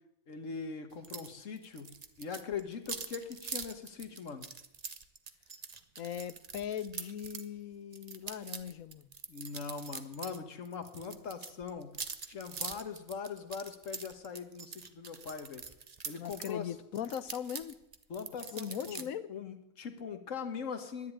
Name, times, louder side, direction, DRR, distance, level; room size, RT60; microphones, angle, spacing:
voice 1, 0.3-1.9 2.2-4.5 9.3-11.9 12.3-15.6 16.0-16.7 18.1-19.0 19.3-21.1, left 6 dB, 70° left, 8 dB, 1.7 m, -41 dB
sound 1, 1.0-1.3 1.6-7.5 7.9-10.4 10.6-16.5 16.9-19.0, right 5 dB, 35° right, 0.8 m, -44 dB
voice 2, 6.0-9.1 16.2-17.8 18.5-19.2, left 9 dB, 90° left, 14 dB, 1.2 m, -39 dB
10.5 x 10.0 x 10.0 m, 0.86 s
omnidirectional pair, 1.4 m